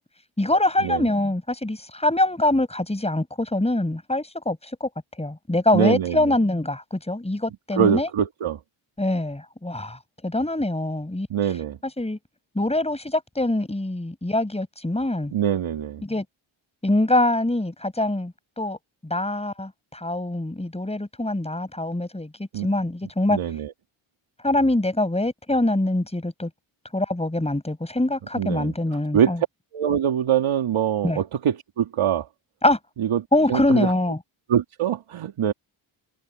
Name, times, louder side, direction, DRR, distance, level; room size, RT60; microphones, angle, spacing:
voice 1, 0.4-4.9 5.2-8.1 9.0-11.3 12.0-12.2 12.6-15.3 16.0-16.2 16.8-18.8 19.0-23.4 24.4-26.5 26.9-29.4 31.0-31.2 32.6-32.8 33.3-34.2, left 1 dB, 10° left, 7.3 m, -24 dB
voice 2, 5.7-6.3 7.8-8.6 11.3-11.8 15.3-16.0 22.5-22.7 23.3-23.7 28.3-28.7 29.1-29.3 29.7-32.3 33.0-33.2 33.5-33.9 34.5-35.5, right 9 dB, 80° right, 3.1 m, -23 dB
cardioid pair, 70°, 49 cm